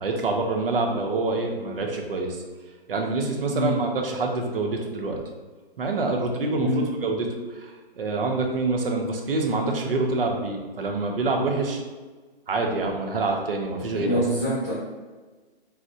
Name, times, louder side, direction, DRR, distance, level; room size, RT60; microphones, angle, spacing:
voice 1, 0.0-2.4 2.9-5.2 5.8-7.3 7.5-11.8 12.5-14.2, right 3 dB, 60° right, 2 dB, 0.6 m, -26 dB
voice 2, 13.9-14.7, right 1 dB, 15° right, -11 dB, 0.5 m, -25 dB
4.1 x 2.0 x 2.6 m, 1.3 s
hypercardioid pair, 170°, 32 cm